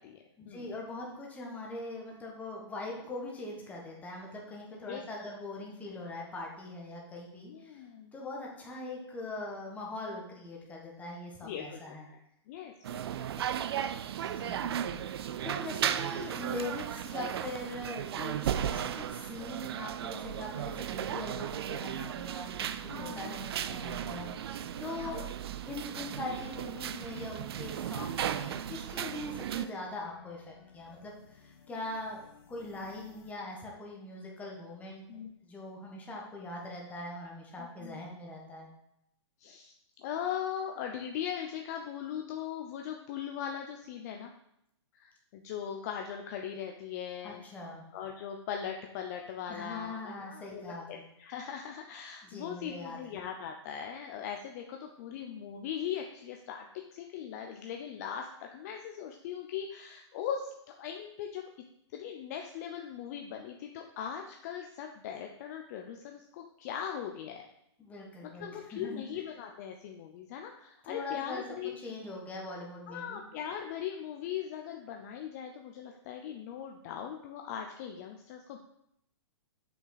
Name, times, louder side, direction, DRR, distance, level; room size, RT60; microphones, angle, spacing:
voice 1, 0.4-7.8 8.1-12.1 14.2-15.0 15.4-22.5 22.9-24.5 24.8-25.3 25.7-35.0 35.4-38.7 47.2-47.8 49.5-51.0 52.2-53.0 67.8-69.0 70.9-71.4 71.8-73.2, left 2 dB, 10° left, -2 dB, 1.4 m, -42 dB
voice 2, 7.5-8.1 11.4-12.2 12.5-13.7 14.1-14.3 22.9-23.2 24.9-25.3 35.1-35.3 37.6-38.0 39.4-39.7 40.0-44.3 44.9-47.4 47.9-61.5 61.9-67.4 68.2-71.8 72.9-78.6, left 8 dB, 35° left, 3 dB, 0.6 m, -40 dB
sound 1, 12.8-29.7, right 10 dB, 60° right, 0.4 m, -35 dB
sound 2, 22.6-33.3, left 6 dB, 55° left, 1.1 m, -57 dB
7.1 x 5.7 x 4.0 m, 0.78 s
hypercardioid pair, 155°, 15 cm